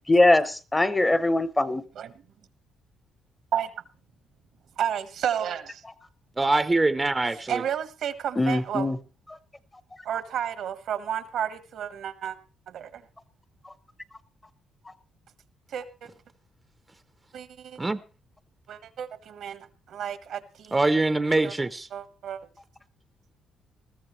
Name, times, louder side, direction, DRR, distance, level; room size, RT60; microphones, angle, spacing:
voice 1, 0.1-1.8 8.4-9.0, left 2 dB, 15° left, 0.9 m, -21 dB
voice 2, 4.8-5.8 7.5-8.9 10.0-12.4 12.7-13.0 15.7-16.1 17.3-17.8 18.7-20.8 21.4-21.5 21.9-22.4, right 9 dB, 75° right, 1.4 m, -32 dB
voice 3, 6.4-7.6 17.8-18.0 20.7-21.9, right 2 dB, 20° right, 0.7 m, -23 dB
20.0 x 14.0 x 3.2 m
cardioid pair, 90°, 0 cm